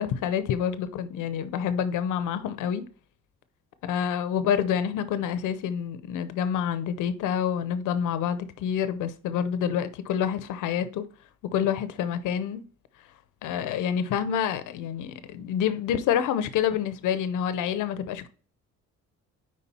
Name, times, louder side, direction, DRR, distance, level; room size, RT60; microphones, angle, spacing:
voice 1, 0.0-2.8 3.8-11.0 11.5-12.6 13.4-18.3, left 8 dB, 85° left, 0.7 m, -27 dB
4.9 x 4.2 x 5.4 m
cardioid pair, 90°, 30 cm